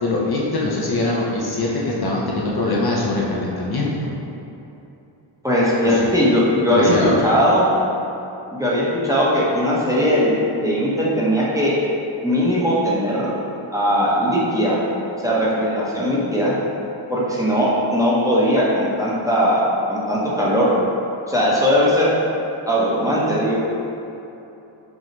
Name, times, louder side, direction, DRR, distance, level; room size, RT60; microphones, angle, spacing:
voice 1, 0.0-4.1 5.8-6.1 6.7-7.2, left 2 dB, 50° left, -5 dB, 0.7 m, -22 dB
voice 2, 5.4-6.9 7.2-7.7 8.6-11.7 12.2-13.3 13.7-14.8 15.2-16.5 17.1-20.7 21.3-22.1 22.7-23.6, equal, 5° right, -7 dB, 0.9 m, -19 dB
5.4 x 2.4 x 3.1 m, 2.9 s
cardioid pair, 45°, 49 cm